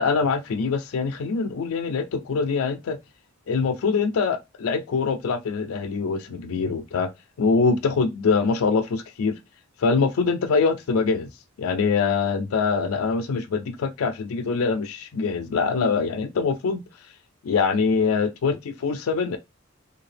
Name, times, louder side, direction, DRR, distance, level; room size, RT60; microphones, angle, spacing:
voice 1, 0.0-3.0 3.5-7.1 7.4-9.4 9.8-11.3 11.6-16.8 17.4-19.4, left 4 dB, 85° left, 0.4 m, -24 dB
2.7 x 2.3 x 3.2 m
head